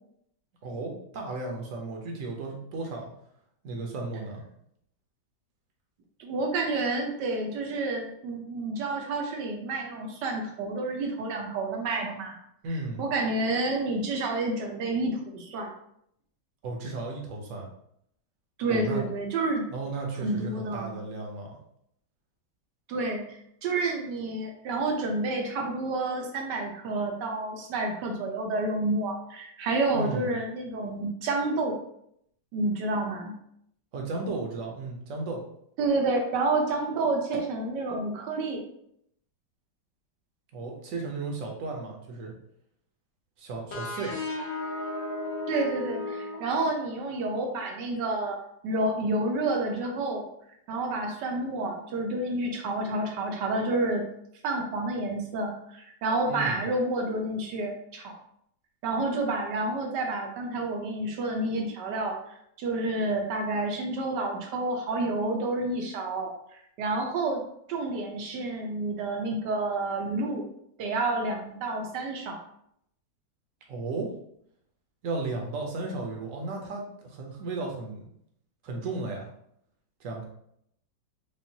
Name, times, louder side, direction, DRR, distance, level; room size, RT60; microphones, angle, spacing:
voice 1, 0.6-3.1 3.6-4.4 12.6-13.0 16.6-17.7 18.7-19.0 19.7-21.6 29.9-30.3 33.9-35.4 40.5-42.3 43.4-44.2 56.2-56.6 73.7-74.1 75.0-78.0 78.6-79.3 80.0-80.2, right 3 dB, 55° right, 1 dB, 1.1 m, -34 dB
voice 2, 6.2-12.3 13.0-15.7 18.6-19.7 20.2-20.9 22.9-31.8 32.5-33.3 35.8-38.6 45.5-48.4 48.6-50.2 50.7-54.0 54.4-58.1 58.8-62.1 62.6-66.3 66.8-67.4 67.7-70.4 70.8-72.4, right 2 dB, 75° right, 2 dB, 1.4 m, -29 dB
sound 1, 43.7-47.2, left 2 dB, 60° left, 1.6 m, -35 dB
5.3 x 2.5 x 2.7 m, 0.72 s
omnidirectional pair, 1.9 m